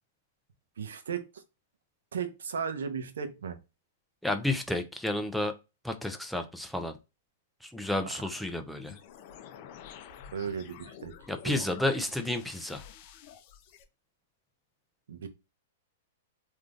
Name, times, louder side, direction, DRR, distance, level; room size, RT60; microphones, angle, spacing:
voice 1, 0.8-1.4 2.1-3.6 8.0-8.1 10.3-11.1 11.4-11.6 15.1-15.3, right 7 dB, 80° right, 0.6 m, -35 dB
voice 2, 4.2-5.5 5.8-7.0 7.6-9.0 11.3-12.8, left 1 dB, ahead, 0.5 m, -31 dB
sound 1, 8.8-13.8, left 9 dB, 50° left, 0.6 m, -49 dB
3.5 x 2.5 x 2.4 m
hypercardioid pair, 130°, 0 cm